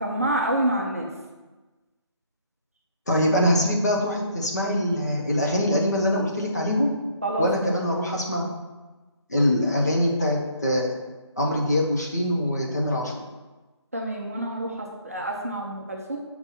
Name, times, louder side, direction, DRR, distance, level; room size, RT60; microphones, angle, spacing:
voice 1, 0.0-1.1 7.2-7.7 13.9-16.2, right 1 dB, 30° right, -1 dB, 0.6 m, -27 dB
voice 2, 3.1-6.9 7.4-8.5 9.3-10.9 11.4-13.1, left 1 dB, 35° left, -1 dB, 0.9 m, -23 dB
6.6 x 4.4 x 4.3 m, 1.2 s
figure-of-eight pair, 175°, 15 cm